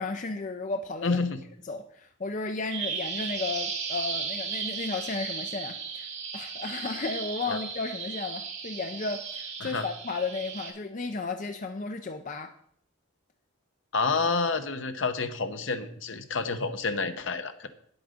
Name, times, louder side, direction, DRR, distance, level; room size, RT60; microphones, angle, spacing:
voice 1, 0.0-1.2 1.7-12.5, left 3 dB, 40° left, 0.5 m, -34 dB
voice 2, 1.0-1.4 7.5-7.6 9.6-9.9 13.9-17.7, left 4 dB, 65° left, 0.8 m, -29 dB
Bird vocalization bird call bird song, 2.7-10.7, right 5 dB, 55° right, 2.5 m, -35 dB
9.3 x 7.9 x 5.0 m
head